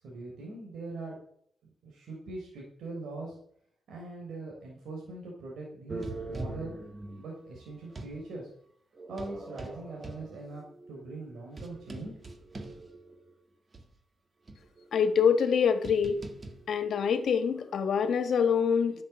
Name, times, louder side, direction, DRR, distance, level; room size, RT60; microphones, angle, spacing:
voice 1, 0.0-1.2 1.8-3.4 3.9-6.8 7.2-8.5 9.1-12.1, right 2 dB, 75° right, -2 dB, 3.9 m, -41 dB
sound 1, 5.9-8.2 8.9-13.3 13.7-13.8 14.5-18.0, right 2 dB, 40° right, 1.9 m, -43 dB
voice 2, 14.9-16.2 16.7-18.9, left 6 dB, 70° left, 9 dB, 1.6 m, -25 dB
10.5 x 7.4 x 7.3 m, 0.68 s
cardioid pair, 65°, 0 cm